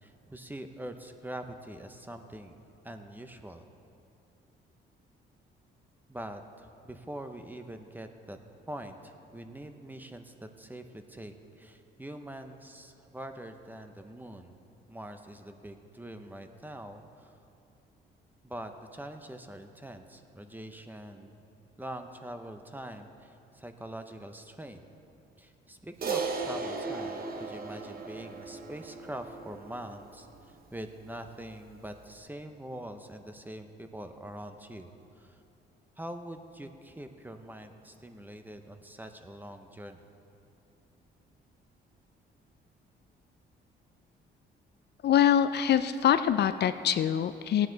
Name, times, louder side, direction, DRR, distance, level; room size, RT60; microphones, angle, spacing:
voice 1, 0.0-2.6 2.8-3.6 6.1-8.4 8.7-14.5 14.9-17.3 18.4-21.3 21.8-24.9 25.4-34.9 35.2-35.4 36.0-40.0, right 1 dB, 10° right, 7 dB, 0.8 m, -44 dB
Crash cymbal, 26.0-30.6, right 4 dB, 50° right, 1.1 m, -36 dB
voice 2, 45.0-47.7, left 9 dB, 60° left, 11 dB, 0.4 m, -24 dB
16.5 x 9.2 x 4.0 m, 2.7 s
cardioid pair, 90°, 20 cm